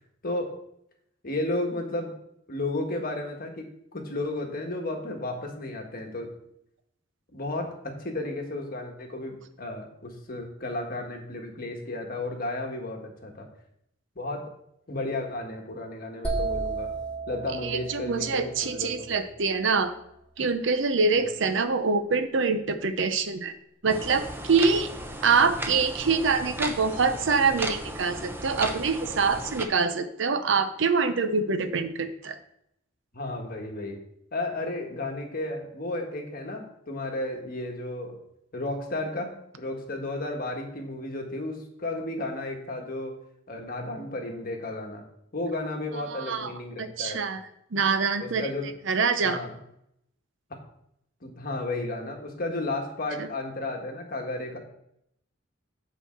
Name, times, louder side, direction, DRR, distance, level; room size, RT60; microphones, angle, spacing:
voice 1, 0.2-0.5 1.2-2.1 2.5-6.3 7.3-13.5 14.1-14.5 14.9-16.9 17.3-19.2 21.2-21.3 33.1-34.0 34.3-38.2 38.5-43.2 43.5-45.0 45.3-47.2 48.2-48.8 49.2-49.6 51.2-54.6, left 2 dB, 50° left, 2 dB, 1.5 m, -33 dB
sound 1, 16.2-20.0, right 3 dB, 5° left, 1.3 m, -34 dB
voice 2, 17.6-19.9 20.4-23.5 23.8-24.9 25.2-32.4 46.1-46.5 46.8-47.4 47.7-48.5 48.9-49.4 53.2-53.3, right 4 dB, 70° right, 10 dB, 0.7 m, -25 dB
sound 2, 23.9-29.7, right 1 dB, 10° right, 0.7 m, -35 dB
8.2 x 4.2 x 6.2 m, 0.76 s
head